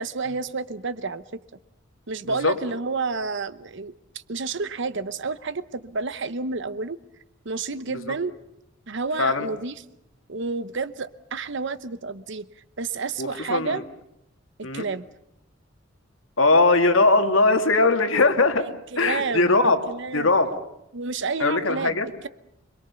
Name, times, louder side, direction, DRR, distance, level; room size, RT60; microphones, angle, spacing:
voice 1, 0.0-1.4 2.1-7.0 7.4-8.3 8.9-9.8 10.3-12.4 12.8-13.8 14.6-15.0 18.6-20.3 20.9-22.3, right 4 dB, 65° right, 0.9 m, -30 dB
voice 2, 13.2-13.8 14.6-14.8 16.4-18.7 19.0-19.8 20.1-20.5 21.4-22.1, left 3 dB, 80° left, 2.3 m, -20 dB
27.0 x 22.0 x 6.9 m
head